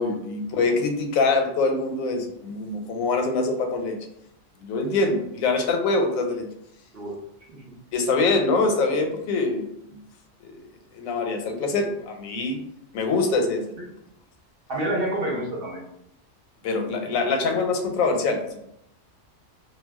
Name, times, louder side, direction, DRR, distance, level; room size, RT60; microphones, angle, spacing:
voice 1, 0.0-4.0 4.6-6.5 7.9-10.0 10.4-10.6 10.9-12.6 12.9-13.8 16.6-18.6, left 3 dB, 90° left, 4 dB, 1.0 m, -24 dB
voice 2, 14.7-15.8 17.1-17.6, right 1 dB, 55° right, -2 dB, 0.7 m, -29 dB
2.3 x 2.2 x 3.3 m, 0.77 s
omnidirectional pair, 1.4 m